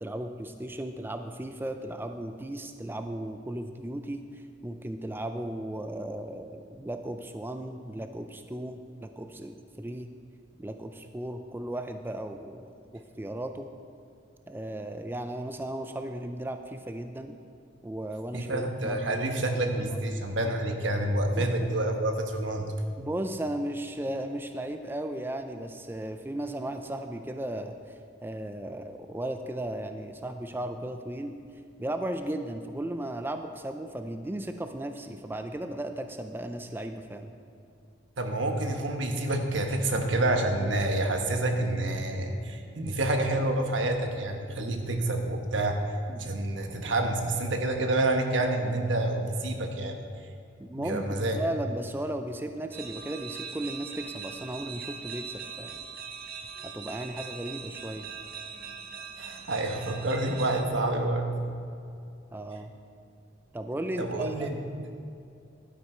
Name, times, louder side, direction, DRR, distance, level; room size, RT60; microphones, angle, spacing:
voice 1, 0.0-10.1 10.6-13.7 14.5-17.4 17.8-19.2 19.8-20.0 21.4-21.7 23.0-27.7 28.2-31.3 31.8-37.3 44.5-44.8 46.1-46.2 50.6-55.8 56.6-58.1 62.3-62.7 63.5-64.5, right 1 dB, 10° right, 7 dB, 0.4 m, -36 dB
voice 2, 18.3-22.7 38.2-45.8 46.2-50.0 50.8-51.4 59.2-61.4 64.0-64.6, right 2 dB, 80° right, 4 dB, 1.2 m, -28 dB
sound 1, 52.7-60.6, right 6 dB, 50° right, 0.7 m, -41 dB
11.5 x 9.4 x 4.4 m, 2.6 s
head